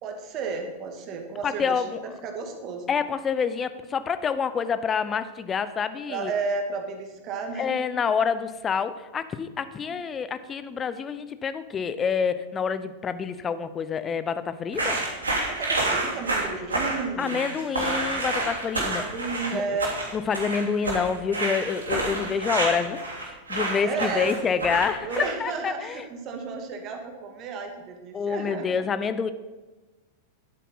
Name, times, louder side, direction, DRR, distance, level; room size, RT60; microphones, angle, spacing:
voice 1, 0.0-1.8 2.2-2.9 6.1-7.8 9.9-10.0 15.0-18.2 18.8-19.9 22.2-22.3 23.8-24.4 25.0-28.9, right 4 dB, 40° right, 5 dB, 2.1 m, -33 dB
voice 2, 1.4-2.1 2.9-6.3 7.6-15.0 17.2-19.1 19.5-19.8 20.1-26.0 28.1-29.3, left 6 dB, 25° left, 13 dB, 0.8 m, -27 dB
sound 1, 14.7-25.5, right 2 dB, 80° right, 3.0 m, -28 dB
11.0 x 8.5 x 5.6 m, 1.2 s
figure-of-eight pair, 95°, 0 cm